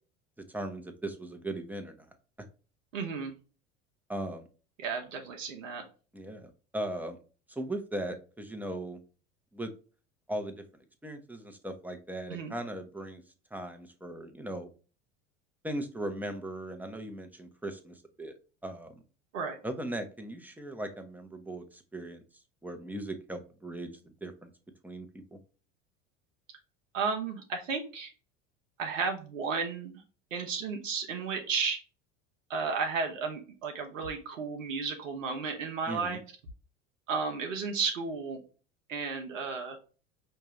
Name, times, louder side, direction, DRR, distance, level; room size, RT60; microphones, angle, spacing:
voice 1, 0.5-2.1 4.1-4.4 6.1-7.2 7.5-9.0 9.5-9.7 10.3-10.6 11.0-13.2 13.5-14.7 15.6-18.3 18.6-19.0 19.6-22.2 22.6-24.5 24.8-25.4 35.9-36.2, right 1 dB, 5° right, 6 dB, 0.8 m, -38 dB
voice 2, 2.9-3.3 4.8-5.8 12.3-12.5 19.3-19.6 26.9-28.1 28.8-30.0 30.3-31.8 32.5-36.2 37.1-38.4 38.9-39.8, right 5 dB, 85° right, 3 dB, 0.9 m, -33 dB
5.5 x 2.6 x 3.1 m, 0.35 s
hypercardioid pair, 80°, 38 cm